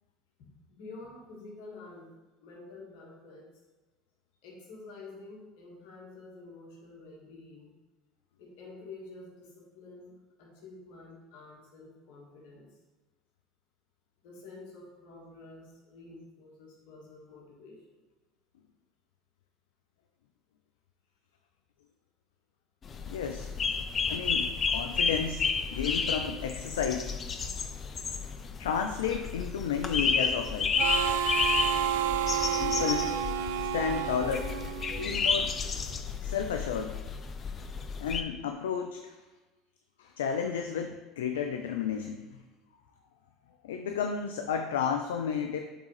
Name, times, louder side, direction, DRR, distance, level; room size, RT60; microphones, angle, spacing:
voice 1, 0.4-2.1 2.4-3.5 4.4-7.7 8.4-12.7 14.2-18.0, left 3 dB, 70° left, -2 dB, 1.7 m, -49 dB
sound 1, 22.8-38.2, left 5 dB, 35° left, 0.5 m, -31 dB
voice 2, 23.1-23.5 24.1-25.5 25.7-27.1 28.6-30.7 32.6-33.1 33.6-34.5 35.0-35.5 36.2-36.9 38.0-39.1 40.0-42.4 43.6-45.6, left 7 dB, 90° left, 5 dB, 0.4 m, -32 dB
Harmonica, 30.8-35.2, right 10 dB, 80° right, 0.3 m, -30 dB
8.0 x 3.7 x 3.2 m, 1.2 s
hypercardioid pair, 80°, 0 cm